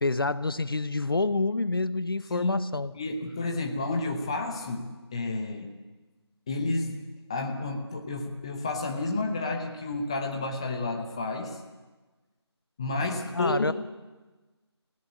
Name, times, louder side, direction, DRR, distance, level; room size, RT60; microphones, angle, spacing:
voice 1, 0.0-2.9 13.3-13.7, left 3 dB, 55° left, 16 dB, 0.7 m, -27 dB
voice 2, 2.9-5.7 6.5-7.0 7.3-11.6 12.8-13.7, left 2 dB, 10° left, 4 dB, 0.8 m, -31 dB
21.0 x 17.0 x 8.1 m, 1.2 s
figure-of-eight pair, 165°, 15 cm